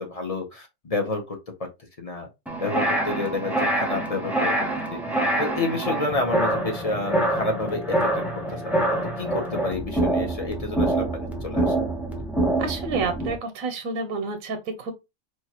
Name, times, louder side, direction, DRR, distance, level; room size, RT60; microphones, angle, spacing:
voice 1, 0.0-1.7 2.0-2.3 2.6-5.0 5.4-8.2 8.5-8.9 9.2-11.7, left 3 dB, 35° left, 0.7 m, -30 dB
sound 1, 2.5-13.4, right 1 dB, ahead, 0.5 m, -25 dB
voice 2, 12.6-14.9, right 4 dB, 90° right, 1.1 m, -29 dB
4.6 x 2.4 x 2.8 m
omnidirectional pair, 1.4 m